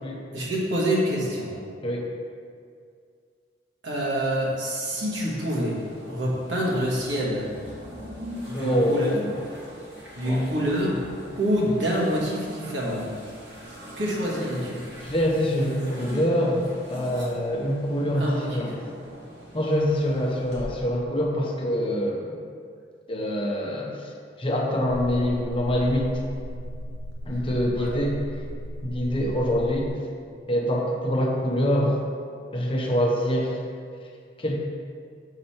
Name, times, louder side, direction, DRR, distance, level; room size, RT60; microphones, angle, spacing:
voice 1, 0.3-1.5 3.8-5.8 6.0-7.5 8.5-9.1 10.1-11.0 11.4-13.1 14.0-14.8 18.1-18.8 27.7-27.9, equal, 80° right, -5 dB, 1.7 m, -26 dB
sound 1, 4.9-20.6, equal, 65° right, 1.8 m, -43 dB
voice 2, 8.5-9.4 10.2-10.4 15.0-18.8 19.5-22.4 23.1-24.1 24.4-26.2 27.2-28.2 28.8-29.9 30.5-31.9 32.5-33.6 34.4-34.6, equal, 30° left, -1 dB, 0.8 m, -25 dB
sound 2, 24.9-29.9, equal, 90° left, 0.4 m, -36 dB
6.6 x 4.9 x 4.4 m, 2.2 s
head